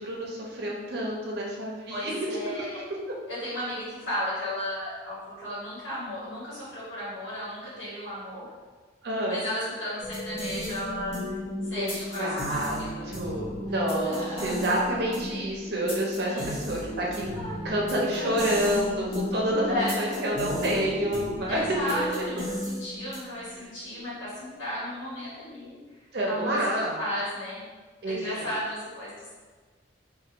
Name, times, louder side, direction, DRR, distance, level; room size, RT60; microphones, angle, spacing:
voice 1, 0.0-2.1 9.0-9.4 11.7-11.9 12.2-12.8 13.0-17.3 17.6-21.6 26.1-27.0 28.0-28.5, right 1 dB, 55° right, -2 dB, 0.5 m, -28 dB
voice 2, 1.9-2.8 3.3-8.5 9.3-11.3 11.6-13.0 14.0-14.6 16.3-16.5 17.3-17.7 18.0-18.8 19.7-20.5 21.5-25.8 26.3-26.7 27.0-27.6 28.0-29.4, equal, 85° left, -9 dB, 1.4 m, -34 dB
sound 1, 10.0-23.5, left 1 dB, 35° left, 0.7 m, -34 dB
2.5 x 2.5 x 2.8 m, 1.4 s
head